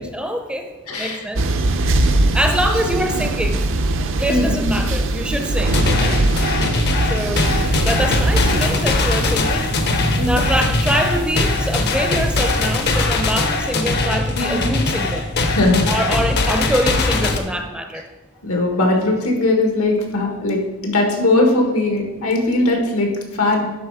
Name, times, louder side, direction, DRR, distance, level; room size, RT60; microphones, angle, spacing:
voice 1, 0.0-1.4 2.3-3.7 4.2-6.2 6.6-6.7 7.1-7.5 7.8-9.7 10.2-15.2 15.9-18.0, equal, 5° right, 5 dB, 0.6 m, -24 dB
voice 2, 0.9-1.2 2.0-2.1 4.3-4.7 10.2-10.5 14.3-14.6 15.5-15.8 16.7-16.8 18.4-23.7, left 2 dB, 80° left, 2 dB, 1.6 m, -19 dB
sound 1, 1.4-8.7, right 2 dB, 65° right, 0.6 m, -20 dB
sound 2, 5.6-17.4, left 3 dB, 50° left, 0.8 m, -21 dB
sound 3, 7.4-13.0, right 1 dB, 85° right, 1.2 m, -27 dB
11.0 x 4.2 x 4.8 m, 1.1 s
head